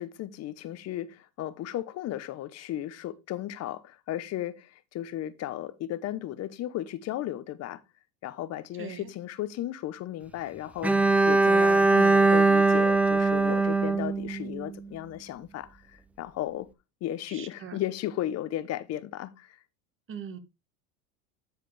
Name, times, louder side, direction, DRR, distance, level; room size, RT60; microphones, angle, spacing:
voice 1, 0.0-7.8 8.2-16.7 17.0-19.6, left 13 dB, 40° left, 0.9 m, -35 dB
voice 2, 8.8-9.1 17.3-17.8 20.1-20.4, right 7 dB, 35° right, 1.6 m, -40 dB
Bowed string instrument, 10.8-14.9, right 3 dB, 5° right, 0.4 m, -21 dB
12.0 x 4.9 x 3.3 m
supercardioid pair, 105°, 38 cm